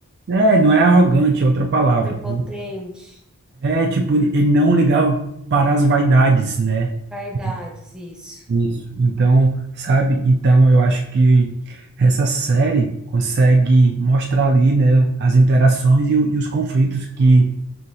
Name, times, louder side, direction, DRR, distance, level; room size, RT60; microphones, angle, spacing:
voice 1, 0.3-2.4 3.6-6.9 8.5-17.5, right 2 dB, 50° right, 2 dB, 0.3 m, -16 dB
voice 2, 2.0-3.2 7.1-8.5, left 1 dB, 5° right, -1 dB, 0.7 m, -34 dB
5.6 x 2.7 x 2.6 m, 0.78 s
head